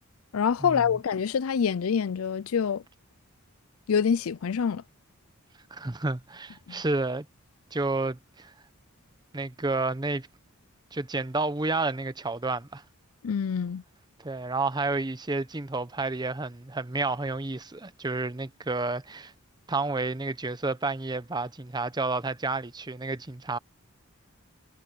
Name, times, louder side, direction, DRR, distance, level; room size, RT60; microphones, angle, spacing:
voice 1, 0.3-2.8 3.9-4.8 6.7-6.8 13.2-13.8, left 7 dB, 80° left, 0.5 m, -26 dB
voice 2, 5.7-7.2 7.7-8.5 9.3-10.3 10.9-12.8 14.2-19.3 19.7-23.6, right 3 dB, 20° right, 0.7 m, -30 dB
head